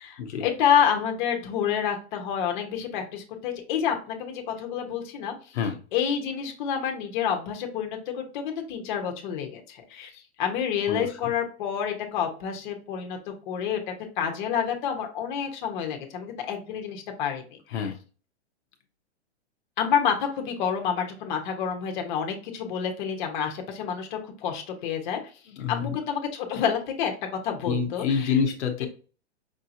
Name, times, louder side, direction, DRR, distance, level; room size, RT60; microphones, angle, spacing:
voice 1, 0.0-5.6 5.9-13.8 14.2-17.6 19.8-25.2 25.7-27.1 27.4-28.0, left 8 dB, 45° left, 3 dB, 1.0 m, -28 dB
voice 2, 10.9-11.3 17.7-18.0 25.5-26.0 27.7-28.9, left 6 dB, 70° left, 3 dB, 0.9 m, -27 dB
5.3 x 2.8 x 2.6 m, 0.38 s
hypercardioid pair, 145°, 35 cm